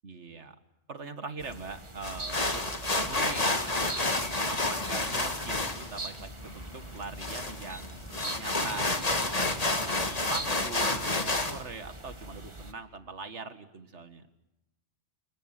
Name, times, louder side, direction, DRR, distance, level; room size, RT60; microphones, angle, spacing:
voice 1, 0.0-0.6 0.9-3.7 4.5-14.3, right 4 dB, 90° right, 9 dB, 2.1 m, -42 dB
sound 1, 1.4-12.7, right 2 dB, 25° right, 1.6 m, -44 dB
sound 2, 2.0-11.6, left 2 dB, 35° left, 2.1 m, -30 dB
28.5 x 19.5 x 9.1 m, 0.88 s
omnidirectional pair, 1.2 m